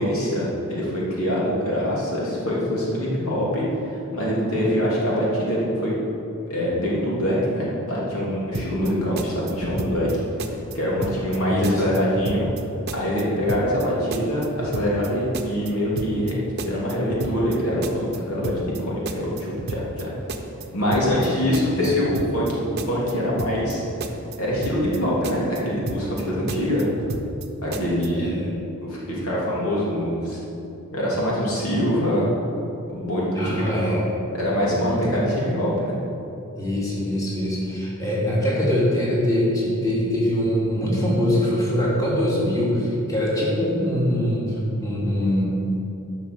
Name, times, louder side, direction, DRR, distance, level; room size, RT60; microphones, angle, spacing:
voice 1, 0.0-3.6 3.9-5.9 6.5-10.1 10.7-12.5 12.9-20.1 20.7-23.8 24.4-26.9 27.6-28.4 28.8-30.4 30.9-32.3 32.9-34.0 34.3-36.0, equal, 75° left, -6 dB, 2.9 m, -24 dB
sound 1, 8.5-8.9 9.2-10.1 10.4-10.8 11.0-11.4 11.6-12.6 12.9-13.2 13.5-13.8 14.1-15.1 15.3-15.7 16.0-16.3 16.6-17.6 17.8-18.2 18.4-18.8 19.1-20.0 20.3-20.7 20.9-21.3 21.5-22.5 22.8-23.1 23.4-23.7 24.0-25.0 25.2-25.6 25.9-26.2 26.5-27.5 27.7-28.1, right 2 dB, 50° right, 0.8 m, -32 dB
voice 2, 11.5-11.8 21.7-21.9 28.2-28.5 33.3-34.1 34.6-35.2 36.6-45.4, equal, 15° left, -7 dB, 2.8 m, -23 dB
11.5 x 6.0 x 6.7 m, 2.8 s
head